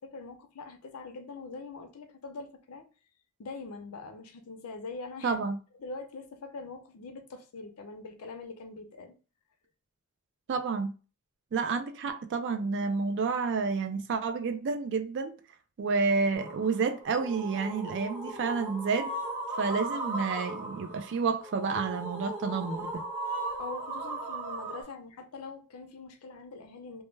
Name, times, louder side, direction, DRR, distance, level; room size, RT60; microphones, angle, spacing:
voice 1, 0.0-2.8 3.4-5.4 5.8-9.1 23.6-27.0, left 3 dB, 80° left, 0.5 m, -43 dB
voice 2, 5.2-5.6 10.5-10.9 11.5-15.3 15.8-19.1 19.6-23.0, right 4 dB, 55° right, 0.4 m, -30 dB
sound 1, 16.3-24.8, right 2 dB, 10° right, 1.1 m, -37 dB
2.1 x 2.1 x 3.1 m
head